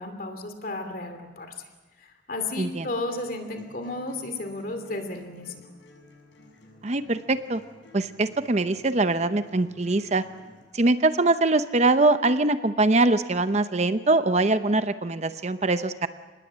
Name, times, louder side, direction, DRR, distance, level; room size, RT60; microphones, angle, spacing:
voice 1, 0.0-1.5 2.0-5.7, left 2 dB, 50° left, 6 dB, 2.9 m, -33 dB
sound 1, 2.6-10.6, left 2 dB, 85° left, 7.2 m, -53 dB
voice 2, 6.8-7.6 7.9-10.2 10.7-16.1, right 2 dB, 35° right, 11 dB, 0.7 m, -23 dB
26.0 x 20.0 x 7.5 m, 1.2 s
head